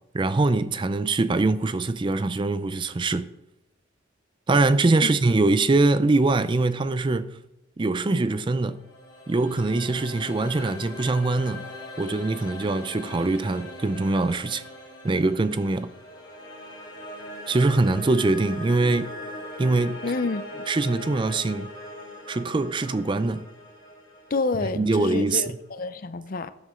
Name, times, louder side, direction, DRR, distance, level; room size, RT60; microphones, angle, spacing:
voice 1, 0.1-3.3 4.5-7.4 7.8-8.8 9.3-11.7 12.0-14.6 15.0-15.9 17.5-19.1 19.6-20.0 20.7-21.7 22.3-23.4 24.7-25.6, right 2 dB, 25° right, 0.4 m, -23 dB
sound 1, 8.5-25.6, left 1 dB, 20° left, 3.3 m, -40 dB
voice 2, 20.0-20.6 24.3-26.5, left 3 dB, 45° left, 0.6 m, -28 dB
13.0 x 7.9 x 3.7 m
head